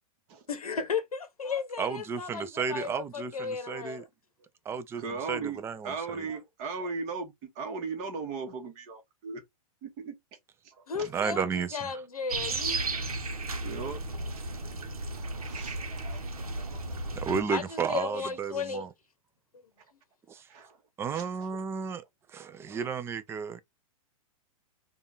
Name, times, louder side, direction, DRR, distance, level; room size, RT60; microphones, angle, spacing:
voice 1, 0.5-4.1 10.9-12.8 17.5-18.9 19.5-19.7, left 6 dB, 90° left, 0.8 m, -35 dB
voice 2, 1.8-4.0 4.7-5.0 5.3-5.9 11.1-11.8 17.2-18.9 20.3-20.4 21.0-22.0 22.3-23.6, right 6 dB, 15° right, 0.4 m, -32 dB
voice 3, 5.0-9.4 9.8-10.4 10.6-11.1 12.9-13.0 13.6-14.6 15.1-17.2 19.8-19.9 20.3-20.8 21.1-21.6 22.7-22.9, right 4 dB, 40° right, 1.3 m, -39 dB
sound 1, 12.3-17.4, right 2 dB, 90° right, 0.9 m, -34 dB
3.5 x 2.4 x 3.8 m
hypercardioid pair, 115°, 18 cm